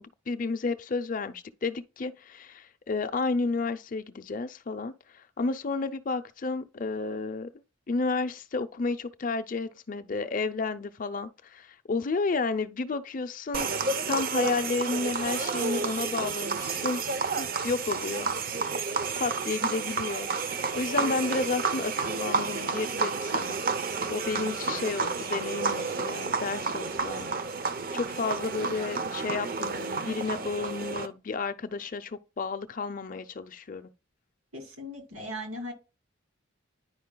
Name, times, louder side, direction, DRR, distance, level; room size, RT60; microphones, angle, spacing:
voice 1, 0.0-7.5 7.9-13.7 14.1-17.0 17.4-18.3 19.2-20.3 20.8-23.6 24.1-27.3 27.9-33.9, left 4 dB, 40° left, 0.5 m, -31 dB
sound 1, 13.5-31.1, right 4 dB, 45° right, 0.6 m, -31 dB
voice 2, 34.5-35.7, equal, 85° right, 2.5 m, -38 dB
10.0 x 5.1 x 2.2 m
head